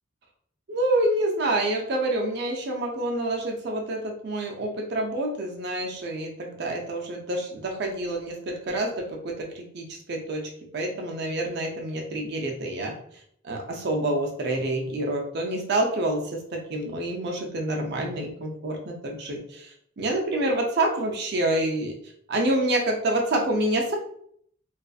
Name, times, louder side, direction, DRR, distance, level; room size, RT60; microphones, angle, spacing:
voice 1, 0.7-12.9 13.4-21.9 22.3-23.9, right 1 dB, 50° right, 1 dB, 0.4 m, -27 dB
2.4 x 2.3 x 2.3 m, 0.65 s
head